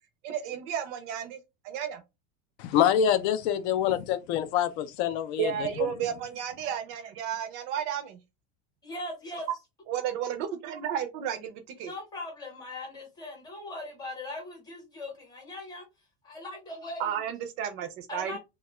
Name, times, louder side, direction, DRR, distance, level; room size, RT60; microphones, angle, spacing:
voice 1, 0.2-1.4 1.6-2.0 5.4-8.2 9.9-11.9 17.0-18.4, right 9 dB, 45° right, 0.4 m, -32 dB
voice 2, 2.6-5.9, left 9 dB, 70° left, 0.5 m, -26 dB
voice 3, 8.8-9.5 11.8-15.9 16.2-17.2 18.1-18.4, left 2 dB, 10° left, 0.7 m, -40 dB
2.3 x 2.2 x 2.9 m
cardioid pair, 170°, 34 cm